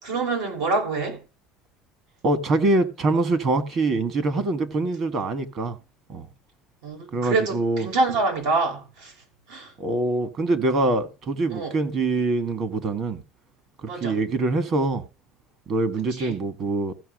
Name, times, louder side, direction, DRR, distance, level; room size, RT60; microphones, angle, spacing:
voice 1, 0.0-1.2 6.8-9.1 9.5-9.7 11.5-11.7 13.9-14.2 16.2-16.4, right 3 dB, 90° right, 6.1 m, -26 dB
voice 2, 2.2-5.8 6.1-6.3 7.1-7.9 9.8-13.2 13.8-15.0 15.7-16.9, right 2 dB, 40° right, 1.5 m, -24 dB
15.0 x 5.7 x 6.4 m
cardioid pair, 150°, 0 cm